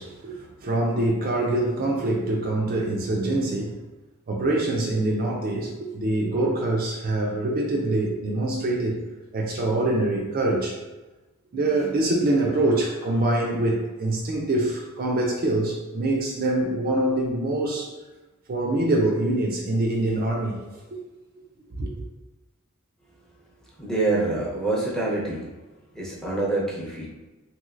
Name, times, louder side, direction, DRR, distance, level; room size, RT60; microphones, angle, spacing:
voice 1, 0.0-3.8 4.3-9.0 9.3-10.8 11.5-17.9 18.5-20.6 20.9-21.0 21.7-21.9, right 2 dB, 40° right, -1 dB, 0.4 m, -24 dB
voice 2, 23.8-25.5 25.9-27.1, right 2 dB, ahead, -6 dB, 0.7 m, -26 dB
3.1 x 3.0 x 2.4 m, 1.1 s
head